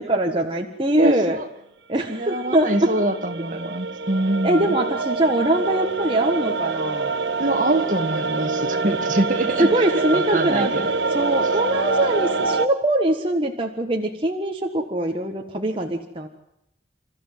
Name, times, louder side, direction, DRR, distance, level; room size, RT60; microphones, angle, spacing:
voice 1, 0.0-1.4 1.9-2.9 4.4-7.1 9.6-10.7 11.1-16.3, right 1 dB, 30° right, 1 dB, 1.6 m, -22 dB
voice 2, 1.0-1.5 2.1-4.8 7.4-9.7 9.9-10.9, right 1 dB, 45° right, 7 dB, 2.1 m, -24 dB
sound 1, 2.3-12.7, right 3 dB, 80° right, 1.1 m, -25 dB
29.0 x 14.0 x 9.4 m, 0.82 s
head